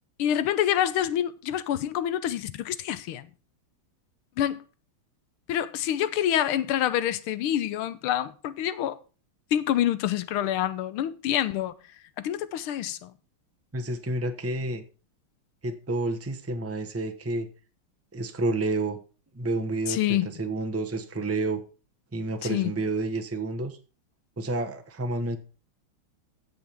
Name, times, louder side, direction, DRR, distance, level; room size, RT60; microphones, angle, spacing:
voice 1, 0.2-3.3 4.4-4.6 5.5-9.0 9.5-11.7 12.2-13.1 19.9-20.3 22.4-22.7, left 11 dB, 85° left, 1.6 m, -27 dB
voice 2, 13.7-14.8 15.6-17.5 18.1-19.0 19.3-21.6 22.1-23.8 24.4-25.4, right 2 dB, 10° right, 0.7 m, -29 dB
16.5 x 5.8 x 3.5 m
omnidirectional pair, 2.3 m